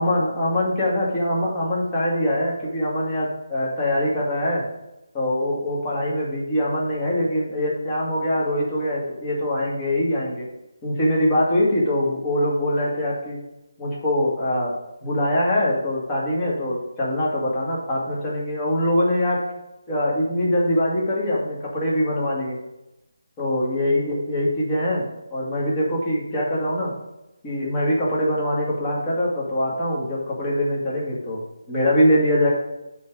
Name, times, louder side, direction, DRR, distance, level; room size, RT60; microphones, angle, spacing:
voice 1, 0.0-4.6 5.1-10.5 10.8-13.4 13.8-14.7 15.0-19.4 19.9-22.6 23.4-26.9 27.4-32.5, left 1 dB, 20° left, -5 dB, 2.3 m, -23 dB
8.3 x 3.9 x 6.2 m, 0.94 s
figure-of-eight pair, 160°, 0 cm